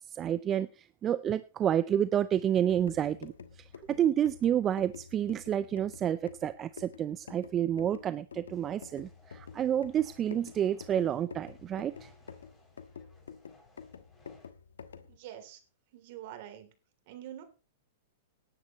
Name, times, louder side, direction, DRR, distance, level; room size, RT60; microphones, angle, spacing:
voice 1, 0.1-3.3 3.9-12.1, right 10 dB, 25° right, 15 dB, 0.5 m, -29 dB
sound 1, 2.6-15.2, left 6 dB, 90° left, 1.2 m, -49 dB
sound 2, 8.5-14.5, left 2 dB, 15° left, 6.7 m, -63 dB
voice 2, 15.1-15.6 15.9-16.7 17.1-17.4, right 11 dB, 55° right, 7 dB, 3.1 m, -45 dB
18.5 x 10.5 x 3.1 m, 0.33 s
hypercardioid pair, 120°, 0 cm